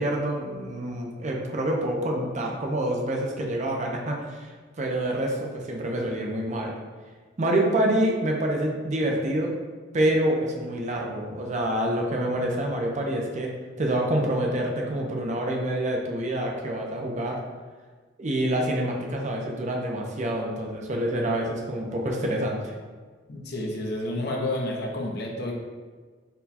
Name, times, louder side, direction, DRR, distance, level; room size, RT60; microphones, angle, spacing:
voice 1, 0.0-4.5 4.8-6.7 7.4-9.5 9.9-13.5 13.8-17.4 18.2-22.7, right 1 dB, 40° right, 1 dB, 0.5 m, -27 dB
voice 2, 23.3-25.5, left 1 dB, 60° left, -1 dB, 0.7 m, -30 dB
4.3 x 2.2 x 4.1 m, 1.5 s
head